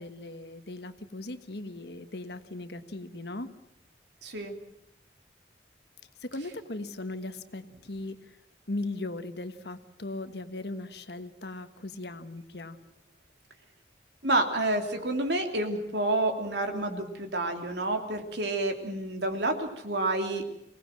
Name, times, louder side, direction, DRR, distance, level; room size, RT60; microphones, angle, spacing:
voice 1, 0.0-3.5 6.2-8.4 8.7-12.8, left 2 dB, 75° left, 10 dB, 1.4 m, -38 dB
voice 2, 4.2-4.6 14.2-20.5, right 2 dB, 80° right, 4 dB, 3.2 m, -29 dB
25.0 x 19.0 x 7.7 m, 0.82 s
head